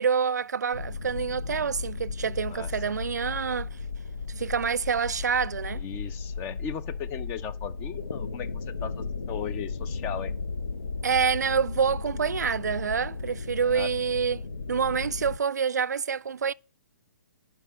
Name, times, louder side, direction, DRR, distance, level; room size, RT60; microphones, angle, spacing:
voice 1, 0.0-3.7 4.3-5.8 11.0-14.4 14.7-16.5, right 6 dB, 65° right, 0.4 m, -27 dB
sound 1, 0.7-15.4, left 4 dB, 70° left, 0.8 m, -35 dB
voice 2, 5.7-10.3 13.6-13.9, left 8 dB, 20° left, 0.6 m, -37 dB
11.0 x 4.6 x 5.6 m
figure-of-eight pair, 125°, 10 cm